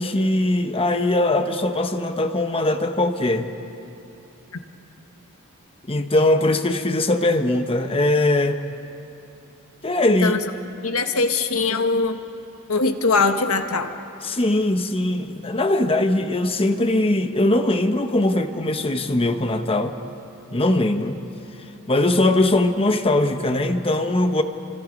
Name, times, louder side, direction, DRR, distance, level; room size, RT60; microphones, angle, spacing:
voice 1, 0.0-3.5 5.9-8.6 9.8-10.3 14.2-19.9 20.5-21.2 21.9-24.4, left 1 dB, 25° left, 7 dB, 1.1 m, -21 dB
voice 2, 10.8-12.2 12.7-13.9, left 3 dB, 75° left, 7 dB, 1.5 m, -21 dB
29.5 x 25.0 x 5.3 m, 2.7 s
head